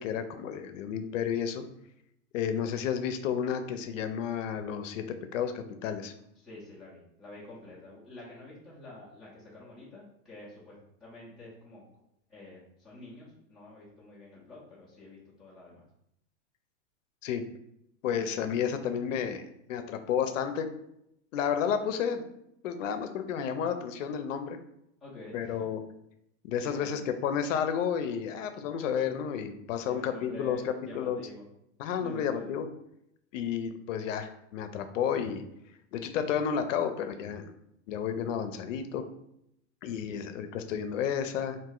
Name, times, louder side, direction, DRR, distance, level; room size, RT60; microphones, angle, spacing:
voice 1, 0.0-1.7 2.3-5.0 5.3-6.1 17.2-17.4 18.0-19.4 19.7-20.7 21.3-22.3 22.6-24.6 25.3-25.8 26.4-31.2 31.8-32.7 33.3-35.4 35.9-37.5 37.9-39.0 39.8-41.6, left 8 dB, 80° left, 8 dB, 0.6 m, -31 dB
voice 2, 6.4-11.8 12.3-15.9 25.0-25.7 26.6-27.1 29.7-31.4 32.0-32.5 40.1-40.2, left 2 dB, ahead, -12 dB, 0.4 m, -48 dB
3.0 x 2.6 x 3.7 m, 0.78 s
supercardioid pair, 175°, 38 cm